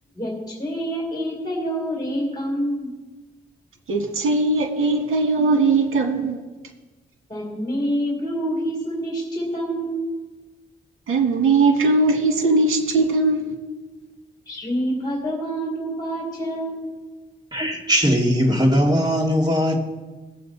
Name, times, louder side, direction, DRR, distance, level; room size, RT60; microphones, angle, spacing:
voice 1, 0.1-2.9 7.3-10.1 14.5-16.9, equal, 20° left, -2 dB, 3.3 m, -27 dB
voice 2, 3.9-6.4 11.1-13.5, right 3 dB, 85° right, 3 dB, 1.9 m, -19 dB
voice 3, 17.5-19.8, equal, 20° right, -1 dB, 2.5 m, -19 dB
20.0 x 8.0 x 4.1 m, 1.2 s
wide cardioid pair, 110°, 21 cm